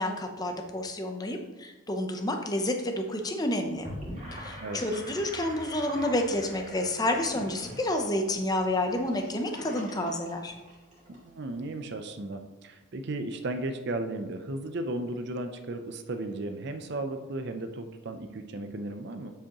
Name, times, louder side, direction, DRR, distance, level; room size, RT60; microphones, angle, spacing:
voice 1, 0.0-3.9 4.3-10.6, left 1 dB, 20° left, 4 dB, 0.6 m, -29 dB
Gurgling / Sink (filling or washing), 3.7-11.2, equal, 35° right, 2.2 m, -44 dB
voice 2, 11.1-19.3, right 2 dB, 50° right, 7 dB, 0.5 m, -35 dB
7.3 x 7.0 x 2.9 m, 1.1 s
head